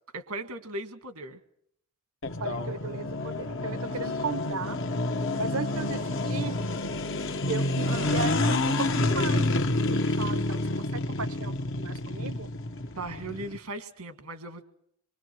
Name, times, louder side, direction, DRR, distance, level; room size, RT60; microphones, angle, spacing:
voice 1, 0.1-1.4 3.9-4.0 7.8-8.2 13.0-14.6, right 2 dB, 90° right, 8 dB, 2.0 m, -38 dB
sound 1, 2.2-13.6, left 2 dB, 60° left, 1.3 m, -29 dB
voice 2, 2.4-4.8 5.4-6.6 7.5-12.5, right 4 dB, 70° right, 13 dB, 1.1 m, -36 dB
27.0 x 23.5 x 4.6 m, 0.70 s
head